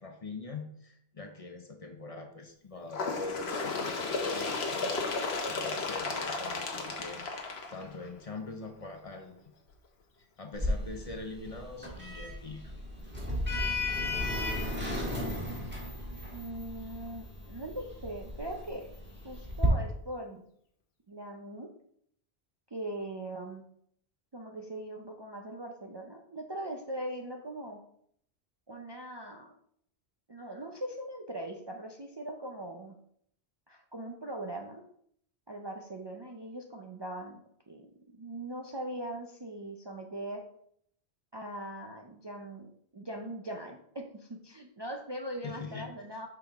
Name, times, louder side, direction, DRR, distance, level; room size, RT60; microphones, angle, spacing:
voice 1, 0.0-5.0 5.4-7.2 7.7-9.4 10.2-12.7 45.4-45.9, left 3 dB, 40° left, 4 dB, 0.7 m, -43 dB
Bird, 2.9-8.3 9.2-9.3 9.7-9.8 10.7-10.8 11.7-11.8 12.7-12.8, left 3 dB, 75° left, 1.1 m, -34 dB
Sliding door, 10.5-19.7, left 1 dB, 10° right, 1.7 m, -35 dB
voice 2, 14.9-15.8 16.3-18.9 19.2-20.4 21.1-21.7 22.7-23.7 24.3-27.8 28.7-29.5 30.3-33.0 33.7-34.8 35.5-37.4 37.7-37.9 38.1-40.4 41.3-46.3, right 1 dB, 35° right, 1 dB, 0.5 m, -41 dB
5.9 x 5.0 x 3.5 m, 0.67 s
omnidirectional pair, 1.1 m